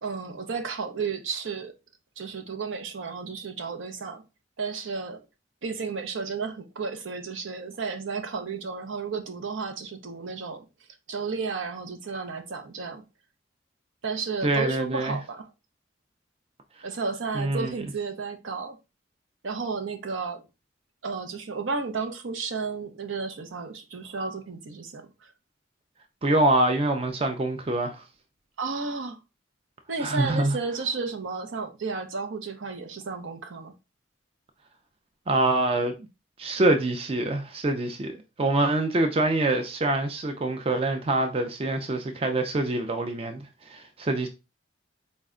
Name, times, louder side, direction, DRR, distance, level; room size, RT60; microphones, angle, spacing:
voice 1, 0.0-1.7 2.2-4.2 4.6-5.2 5.6-10.7 11.1-13.0 14.0-15.5 16.8-18.8 19.4-20.4 21.0-25.3 28.6-29.2 29.9-33.7, right 4 dB, 80° right, 0.6 m, -33 dB
voice 2, 14.4-15.2 17.3-17.7 26.2-28.0 30.0-30.6 35.3-35.9 36.4-44.3, right 2 dB, 30° right, 0.4 m, -25 dB
4.1 x 2.2 x 3.6 m
head